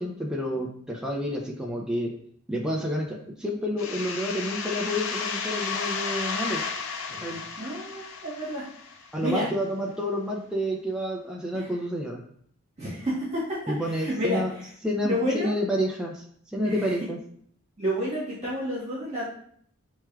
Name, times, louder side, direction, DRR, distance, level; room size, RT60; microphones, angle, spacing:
voice 1, 0.0-2.1 2.5-6.6 7.2-7.4 9.1-12.2 13.7-14.5 14.8-16.2 16.5-17.2, equal, 5° right, 0 dB, 0.4 m, -29 dB
sound 1, 3.8-9.3, left 5 dB, 60° left, 0.4 m, -33 dB
voice 2, 7.1-8.6 9.2-9.5 11.5-11.7 12.8-14.4 15.0-15.6 16.6-16.9 17.8-19.2, equal, 30° right, -9 dB, 1.4 m, -30 dB
4.5 x 3.1 x 2.3 m, 0.62 s
head